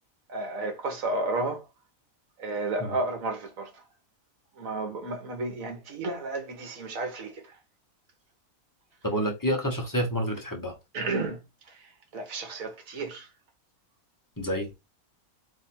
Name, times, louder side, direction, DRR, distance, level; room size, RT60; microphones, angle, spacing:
voice 1, 0.3-1.6 2.4-3.7 4.6-7.4 10.9-11.4 11.7-13.3, right 2 dB, 75° right, 1.5 m, -32 dB
voice 2, 9.0-10.7 14.4-14.7, equal, 15° left, 0.8 m, -28 dB
3.4 x 2.9 x 4.2 m
omnidirectional pair, 1.5 m